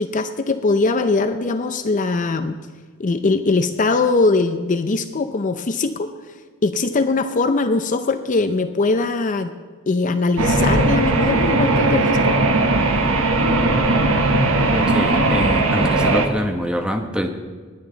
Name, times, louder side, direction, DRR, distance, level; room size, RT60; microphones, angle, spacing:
voice 1, 0.0-2.6 3.0-6.1 6.6-9.5 9.9-12.4, left 3 dB, 40° left, 9 dB, 0.5 m, -21 dB
sound 1, 10.4-16.3, right 2 dB, 85° right, 1.2 m, -18 dB
voice 2, 14.7-17.3, equal, 5° right, 4 dB, 1.0 m, -24 dB
19.5 x 9.0 x 3.9 m, 1.5 s
head